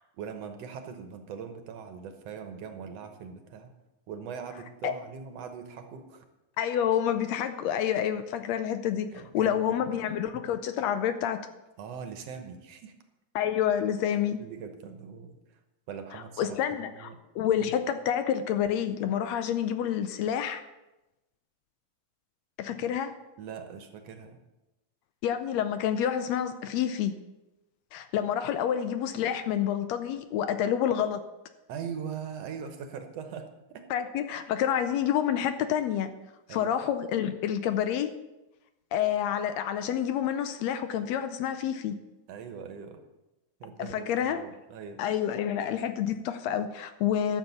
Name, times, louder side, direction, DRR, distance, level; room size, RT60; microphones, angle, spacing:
voice 1, 0.2-3.7 4.1-6.3 9.1-9.8 11.8-12.9 14.4-15.4 15.9-17.2 17.6-17.8 23.4-24.4 31.7-33.9 36.5-36.7 42.3-43.0 43.6-45.0, right 7 dB, 65° right, 7 dB, 2.0 m, -41 dB
voice 2, 6.6-9.1 9.3-11.4 13.3-14.4 16.4-20.6 22.6-23.1 25.2-27.1 27.9-31.2 33.9-36.1 36.5-38.1 38.9-42.0 43.8-44.4 45.0-47.4, left 9 dB, 80° left, 10 dB, 1.8 m, -28 dB
12.0 x 7.1 x 6.9 m, 0.99 s
omnidirectional pair, 3.3 m